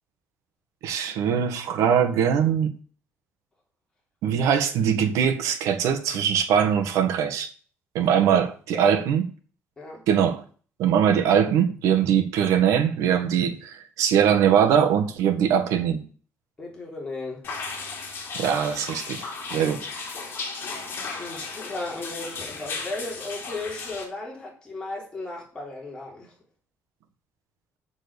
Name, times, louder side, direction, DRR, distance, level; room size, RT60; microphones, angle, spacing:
voice 1, 0.8-2.7 4.2-7.5 7.9-9.2 10.1-10.4 10.8-16.0 18.3-19.2 19.5-19.9, right 8 dB, 80° right, 1.7 m, -22 dB
voice 2, 8.0-8.4 8.7-9.0 9.8-10.0 16.6-17.4 21.2-26.3, left 2 dB, 15° left, 3.8 m, -36 dB
sound 1, 17.4-24.0, left 4 dB, 45° left, 3.1 m, -35 dB
7.3 x 7.1 x 7.0 m
cardioid pair, 160°, 5 cm